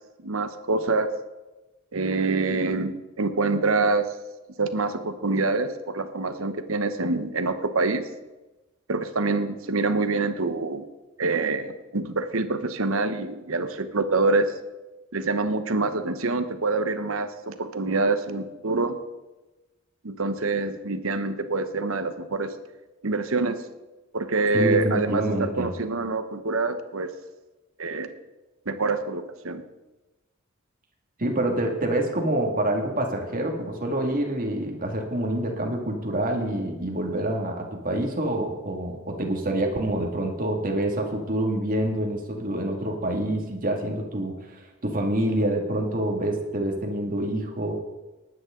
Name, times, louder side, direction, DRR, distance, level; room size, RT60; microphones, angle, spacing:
voice 1, 0.2-1.1 1.9-4.1 4.6-8.0 8.9-10.9 11.2-14.5 15.1-19.0 20.0-22.6 23.0-23.6 24.1-27.1 27.8-28.1 28.7-29.6, right 3 dB, 70° right, 10 dB, 1.0 m, -26 dB
voice 2, 24.5-25.7 31.2-47.7, right 1 dB, 40° right, 2 dB, 2.2 m, -27 dB
19.0 x 9.7 x 3.8 m, 1.1 s
head